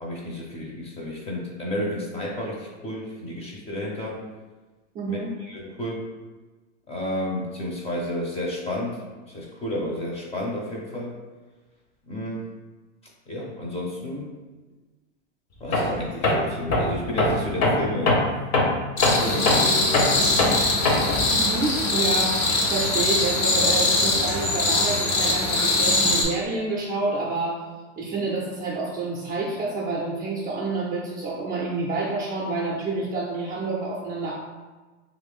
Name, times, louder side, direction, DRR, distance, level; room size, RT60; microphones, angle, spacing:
voice 1, 0.0-4.2 5.1-6.1 6.9-9.0 9.3-11.1 12.1-12.5 13.3-14.3 15.6-18.2 19.1-20.6, left 1 dB, 15° left, -2 dB, 0.6 m, -31 dB
voice 2, 4.9-5.3 21.3-22.4 22.7-27.6 28.0-34.3, right 3 dB, 25° right, -3 dB, 0.5 m, -28 dB
Tools, 15.7-16.0 16.2-21.3, left 2 dB, 45° left, 0.8 m, -22 dB
sound 1, 19.0-26.2, left 2 dB, 85° left, 1.2 m, -22 dB
3.0 x 2.5 x 3.5 m, 1.3 s
supercardioid pair, 130°, 36 cm